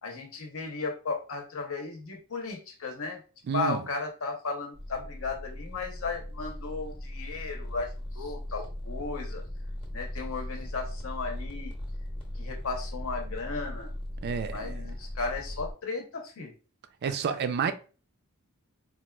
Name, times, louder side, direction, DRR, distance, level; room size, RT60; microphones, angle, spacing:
voice 1, 0.0-3.2 3.5-9.4 9.9-11.7 12.3-13.9 14.5-16.5 17.0-17.3, left 4 dB, 65° left, 0.8 m, -35 dB
voice 2, 3.5-3.8 14.2-14.7 17.0-17.7, right 7 dB, 50° right, 0.3 m, -29 dB
sound 1, 4.7-15.7, left 1 dB, 25° left, 0.7 m, -38 dB
4.1 x 2.3 x 2.2 m
head